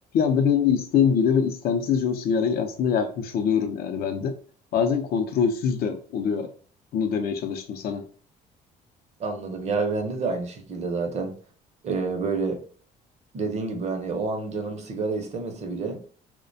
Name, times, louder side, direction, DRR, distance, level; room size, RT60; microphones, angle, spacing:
voice 1, 0.1-4.4 4.7-6.5 6.9-8.1, left 7 dB, 65° left, 0.5 m, -24 dB
voice 2, 9.2-11.4 11.8-12.6 13.3-16.0, right 4 dB, 40° right, 0.6 m, -28 dB
2.4 x 2.1 x 2.5 m
cardioid pair, 110°, 17 cm